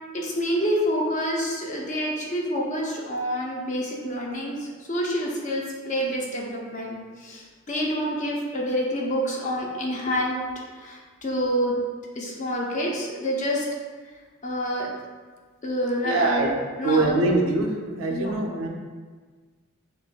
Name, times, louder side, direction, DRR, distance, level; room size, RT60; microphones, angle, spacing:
voice 1, 0.1-10.4 10.7-11.8 12.2-13.7 14.4-14.9 15.6-16.5 16.8-17.3 18.1-18.4, equal, 35° left, -2 dB, 0.7 m, -27 dB
voice 2, 16.0-16.5 16.8-17.7 18.0-18.7, right 2 dB, 70° right, 1 dB, 0.5 m, -23 dB
6.2 x 2.5 x 2.3 m, 1.5 s
head